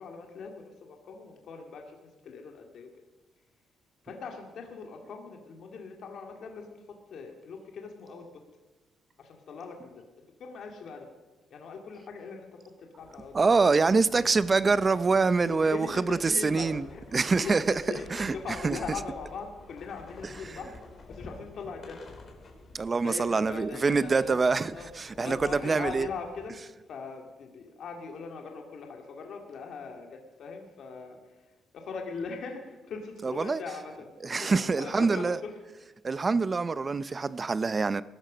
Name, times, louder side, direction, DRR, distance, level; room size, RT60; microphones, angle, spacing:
voice 1, 0.0-2.9 4.0-8.3 9.2-11.1 11.5-12.5 12.8-13.6 15.4-20.7 21.1-22.0 23.0-24.4 24.7-24.9 25.2-26.5 26.9-35.6 36.2-36.3, left 5 dB, 65° left, 2.3 m, -41 dB
sound 1, 13.0-26.5, left 3 dB, 40° left, 3.8 m, -50 dB
voice 2, 13.3-16.8 17.1-17.6 18.1-18.4 18.6-18.8 22.7-24.7 25.0-26.1 33.2-33.6 34.2-35.4 36.0-38.0, right 4 dB, 30° right, 0.6 m, -25 dB
19.5 x 12.5 x 5.2 m
cardioid pair, 90°, 0 cm